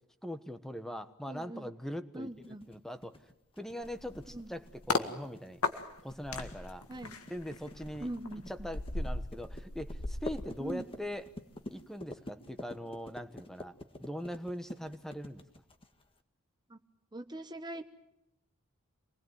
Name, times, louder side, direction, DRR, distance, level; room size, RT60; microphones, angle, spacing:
voice 1, 0.2-3.2 3.6-4.6 4.9-5.6 6.0-6.9 7.3-8.1 8.5-11.3 11.7-13.7 14.0-15.4, equal, ahead, 10 dB, 1.2 m, -41 dB
voice 2, 1.3-1.7 2.1-2.7 4.3-4.5 6.9-7.1 8.0-8.4 10.6-10.9 16.7-16.8 17.1-17.9, right 1 dB, 20° right, 8 dB, 1.0 m, -41 dB
sound 1, 2.4-16.2, left 1 dB, 25° left, 1.7 m, -48 dB
sound 2, 3.8-5.1 5.6-11.2 11.5-11.8, left 3 dB, 80° left, 2.0 m, -38 dB
26.5 x 20.5 x 9.3 m, 0.84 s
head